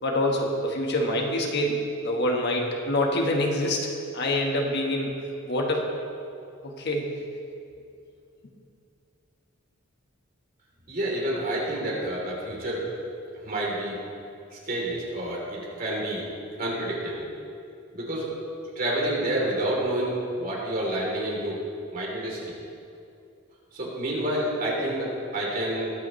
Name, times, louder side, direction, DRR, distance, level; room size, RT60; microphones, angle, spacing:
voice 1, 0.0-3.9 4.1-5.2 5.4-5.9 6.6-7.1, left 1 dB, 55° left, 1 dB, 1.3 m, -26 dB
voice 2, 10.9-12.8 13.4-14.0 14.5-16.2 16.6-17.3 17.9-18.3 18.7-21.6 21.9-22.4 23.7-25.9, right 1 dB, 45° right, -4 dB, 3.1 m, -29 dB
21.5 x 8.2 x 3.1 m, 2.5 s
head